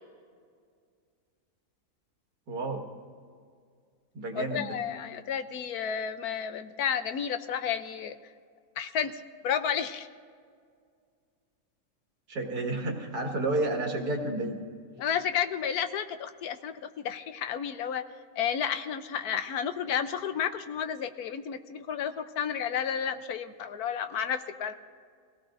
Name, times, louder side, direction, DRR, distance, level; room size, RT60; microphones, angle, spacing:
voice 1, 2.5-2.8 4.1-4.8 12.3-14.6, right 2 dB, 75° right, 2 dB, 2.3 m, -31 dB
voice 2, 4.4-8.2 8.8-9.1 9.4-10.1 15.0-16.7 17.0-18.0 18.4-24.7, left 8 dB, 75° left, 9 dB, 1.2 m, -31 dB
23.5 x 17.5 x 2.6 m, 2.1 s
omnidirectional pair, 1.7 m